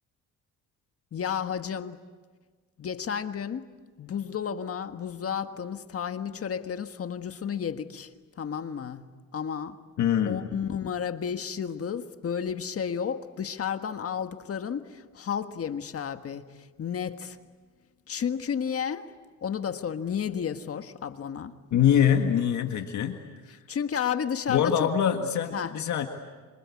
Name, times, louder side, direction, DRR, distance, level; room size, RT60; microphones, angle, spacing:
voice 1, 1.1-2.0 2.8-3.7 4.0-8.1 8.4-9.8 10.2-17.4 18.1-19.1 19.4-21.5 23.7-24.9 25.5-25.7, left 7 dB, 50° left, 1.6 m, -32 dB
voice 2, 10.0-10.4 21.7-23.2 23.5-23.6 24.5-26.1, left 9 dB, 70° left, 1.9 m, -24 dB
27.0 x 26.0 x 8.5 m
cardioid pair, 90°, 30 cm